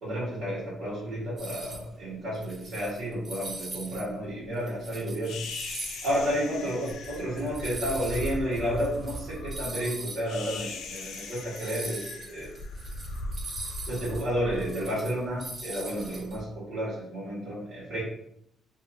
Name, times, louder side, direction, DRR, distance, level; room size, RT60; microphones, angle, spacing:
voice 1, 0.0-5.4 6.0-12.5 13.9-18.0, equal, 70° right, -12 dB, 1.5 m, -31 dB
sound 1, 1.4-1.9 2.3-4.0 4.4-10.2 10.5-10.6 10.8-16.4, right 2 dB, 30° right, 0.6 m, -41 dB
sound 2, 5.2-15.6, left 2 dB, 85° left, 0.3 m, -39 dB
2.8 x 2.4 x 2.4 m, 0.74 s
cardioid pair, 110°, 0 cm